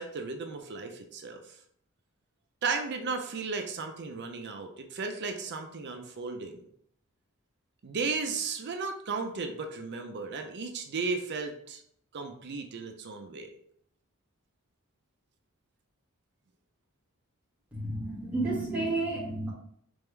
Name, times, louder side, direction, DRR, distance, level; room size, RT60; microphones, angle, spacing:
voice 1, 0.0-1.6 2.6-6.6 7.8-11.8 12.1-13.5, right 4 dB, 55° right, 5 dB, 0.5 m, -35 dB
voice 2, 17.7-19.5, right 2 dB, 5° right, -8 dB, 1.7 m, -31 dB
3.6 x 3.4 x 3.2 m, 0.67 s
head